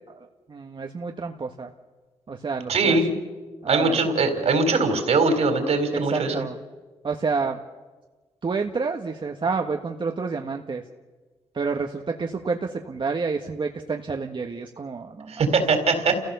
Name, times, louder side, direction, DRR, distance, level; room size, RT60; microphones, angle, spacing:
voice 1, 0.0-1.7 2.3-3.0 3.6-4.0 5.9-6.6 7.0-7.6 8.4-10.8 11.5-15.4, right 4 dB, 45° right, 3 dB, 1.5 m, -29 dB
voice 2, 2.7-3.1 3.7-6.4 15.3-16.3, right 3 dB, 65° right, 6 dB, 3.9 m, -21 dB
29.0 x 16.0 x 6.9 m, 1.3 s
supercardioid pair, 55°, 12 cm